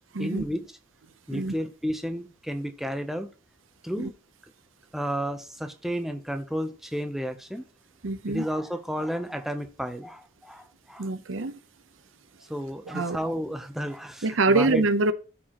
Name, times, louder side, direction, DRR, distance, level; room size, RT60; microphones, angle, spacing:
voice 1, 0.2-0.7 1.3-3.3 3.8-4.1 4.9-7.7 8.3-11.1 12.5-14.8, equal, ahead, 0.6 m, -32 dB
voice 2, 8.0-8.4 11.0-11.6 12.9-13.2 14.2-15.1, right 3 dB, 75° right, 0.7 m, -25 dB
13.0 x 4.5 x 3.0 m
head